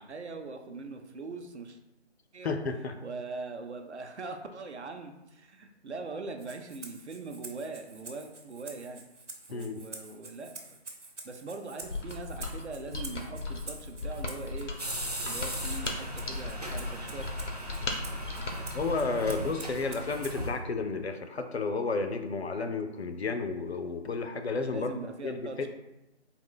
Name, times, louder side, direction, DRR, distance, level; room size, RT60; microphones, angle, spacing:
voice 1, 0.0-1.8 2.3-2.6 3.0-9.0 9.5-10.5 11.2-14.7 15.2-17.3 18.1-18.2 18.5-19.5 24.7-25.7, right 3 dB, 70° right, 5 dB, 0.7 m, -41 dB
voice 2, 2.4-2.9 9.5-9.8 18.7-24.9 25.2-25.5, left 4 dB, 65° left, 7 dB, 0.5 m, -32 dB
Rattle (instrument), 6.4-20.6, right 3 dB, 90° right, 1.0 m, -48 dB
Mechanisms, 11.8-19.0, left 3 dB, 85° left, 0.9 m, -37 dB
sound 1, 14.8-20.5, right 1 dB, 35° right, 0.4 m, -38 dB
3.8 x 2.4 x 3.7 m, 0.95 s
figure-of-eight pair, 160°, 35 cm